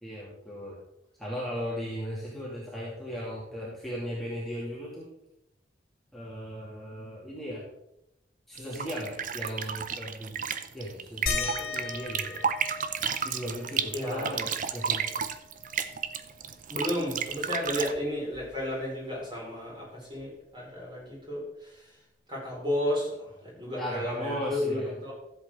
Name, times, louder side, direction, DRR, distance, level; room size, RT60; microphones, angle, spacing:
voice 1, 0.0-0.8 1.2-5.1 6.1-7.6 8.5-10.4 10.7-12.4 13.2-15.1 23.8-24.9, equal, ahead, -8 dB, 2.6 m, -37 dB
sound 1, 8.6-17.9, right 7 dB, 45° right, 0.6 m, -32 dB
sound 2, 11.3-16.4 16.7-16.8 17.2-18.9 20.2-20.3 21.0-21.1, left 4 dB, 50° left, 1.7 m, -39 dB
voice 2, 13.9-14.4 16.7-21.9 22.3-25.1, left 1 dB, 25° right, -4 dB, 5.0 m, -33 dB
14.5 x 7.8 x 3.8 m, 0.83 s
head